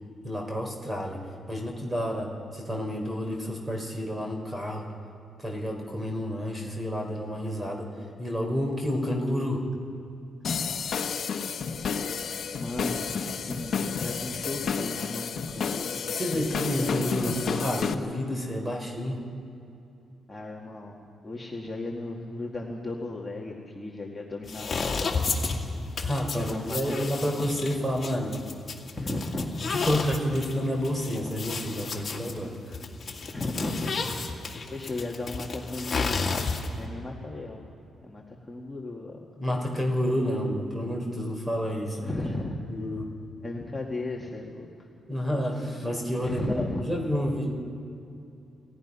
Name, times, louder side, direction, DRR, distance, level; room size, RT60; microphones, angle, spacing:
voice 1, 0.2-1.2 1.5-4.8 5.4-7.9 8.2-9.6 16.2-19.2 26.0-28.4 29.7-32.8 39.4-42.1 42.7-43.1 45.1-47.5, equal, 15° right, 2 dB, 4.1 m, -29 dB
sound 1, 10.4-17.9, left 6 dB, 55° left, 1.2 m, -31 dB
voice 2, 12.6-16.2 20.3-21.0 21.2-26.0 26.3-27.0 28.9-29.5 33.3-34.1 34.7-37.7 38.0-39.2 40.2-40.3 42.0-42.6 43.4-44.9 46.2-46.8, left 2 dB, 15° left, -2 dB, 1.9 m, -35 dB
sound 2, 24.4-36.9, left 4 dB, 35° left, 2.4 m, -32 dB
30.0 x 17.0 x 5.5 m, 2.7 s
cardioid pair, 115°, 0 cm